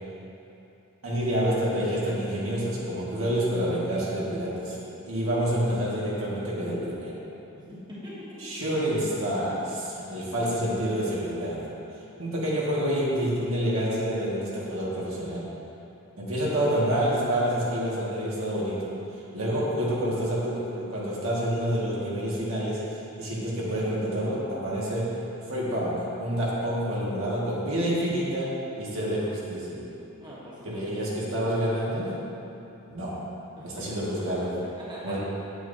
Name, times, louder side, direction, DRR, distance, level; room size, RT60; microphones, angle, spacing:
voice 1, 1.0-4.8 5.1-7.2 8.4-11.7 12.2-15.5 16.2-18.9 19.3-22.9 23.2-29.8 30.6-32.2 32.8-33.2 33.6-34.6 35.0-35.2, equal, 75° right, -7 dB, 1.8 m, -28 dB
voice 2, 7.5-8.5 30.2-31.2 33.6-33.9 34.6-35.2, equal, 20° right, -9 dB, 1.5 m, -43 dB
9.1 x 8.3 x 2.8 m, 2.9 s
head